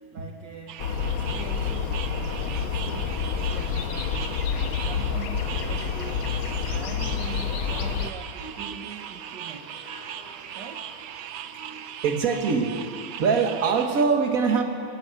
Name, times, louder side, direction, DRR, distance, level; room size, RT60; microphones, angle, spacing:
voice 1, 0.1-4.2 4.6-6.3 6.7-9.8 10.5-10.9, right 7 dB, 60° right, 2 dB, 1.7 m, -43 dB
sound 1, 0.7-14.0, right 9 dB, 80° right, 1.6 m, -39 dB
sound 2, 0.8-8.1, left 6 dB, 85° left, 1.8 m, -28 dB
voice 2, 4.1-4.7 6.6-6.8 8.4-8.7 9.4-9.5 9.9-10.2 11.4-12.8 13.1-14.6, right 5 dB, 45° right, 4 dB, 1.9 m, -26 dB
Dog, 5.7-11.0, left 1 dB, 70° left, 4.9 m, -52 dB
18.5 x 16.0 x 9.6 m, 2.5 s
omnidirectional pair, 2.2 m